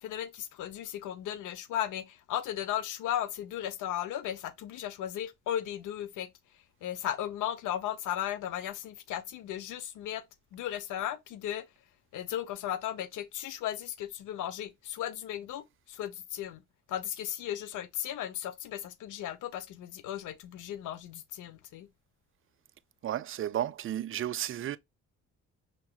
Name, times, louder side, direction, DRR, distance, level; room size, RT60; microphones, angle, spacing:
voice 1, 0.0-6.3 6.5-10.2 10.5-11.7 12.1-16.6 16.9-21.9, left 11 dB, 85° left, 0.7 m, -36 dB
voice 2, 23.0-24.8, right 11 dB, 45° right, 0.4 m, -33 dB
5.7 x 3.0 x 2.2 m
cardioid pair, 90°, 30 cm